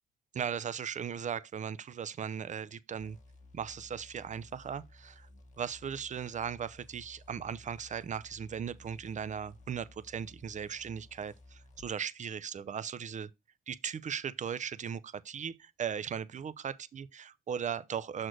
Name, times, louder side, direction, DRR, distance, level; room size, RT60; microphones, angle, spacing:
voice 1, 0.3-3.2 3.5-5.3 5.6-13.3 13.7-18.3, right 7 dB, 40° right, 0.5 m, -38 dB
sound 1, 3.0-11.9, left 2 dB, 40° left, 1.2 m, -57 dB
6.3 x 4.3 x 4.5 m
cardioid pair, 90°, 20 cm